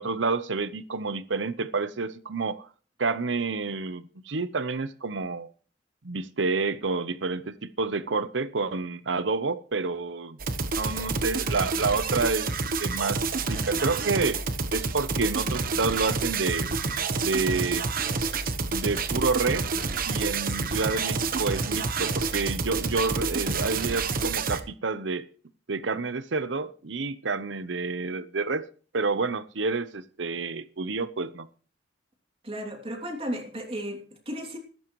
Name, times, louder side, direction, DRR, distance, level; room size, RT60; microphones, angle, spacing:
voice 1, 0.0-2.7 3.0-5.5 6.0-10.4 10.8-12.5 12.8-13.2 13.5-14.4 14.7-16.7 17.2-17.8 18.7-19.7 20.1-25.2 25.7-28.7 28.9-31.5, right 4 dB, 65° right, 14 dB, 0.8 m, -29 dB
sound 1, 10.4-24.6, right 4 dB, 50° right, 1.1 m, -28 dB
voice 2, 32.4-34.6, equal, 30° right, 3 dB, 2.9 m, -34 dB
15.0 x 13.5 x 3.1 m, 0.40 s
head